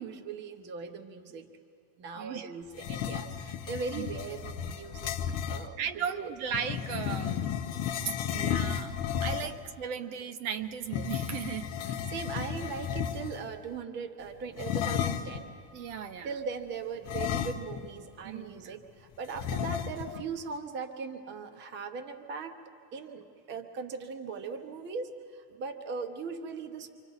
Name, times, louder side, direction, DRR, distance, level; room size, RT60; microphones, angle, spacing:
voice 1, 0.0-1.5 2.0-5.2 5.5-6.4 9.4-9.6 11.8-15.5 16.2-22.6 22.9-26.9, right 5 dB, 20° right, 6 dB, 0.9 m, -39 dB
voice 2, 2.2-2.5 3.9-4.1 5.8-7.6 8.0-8.9 9.2-11.7 15.7-16.4 18.2-18.8, right 7 dB, 60° right, 8 dB, 1.0 m, -36 dB
sound 1, 2.7-5.7 6.5-9.7 10.8-13.5 14.6-15.4 17.0-18.0 18.3-18.4 19.4-20.2, left 9 dB, 30° left, 0.8 m, -33 dB
28.5 x 26.0 x 4.1 m, 2.3 s
supercardioid pair, 160°, 49 cm